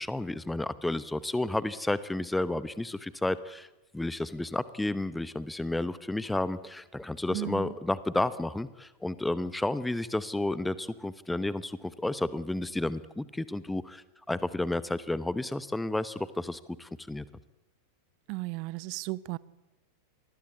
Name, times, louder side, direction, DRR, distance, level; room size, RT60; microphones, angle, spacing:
voice 1, 0.0-3.7 3.9-17.2, left 2 dB, 5° left, 1.0 m, -31 dB
voice 2, 7.3-7.7 18.3-19.4, right 22 dB, 45° right, 0.8 m, -35 dB
26.5 x 21.0 x 8.4 m
figure-of-eight pair, 90°, 0 cm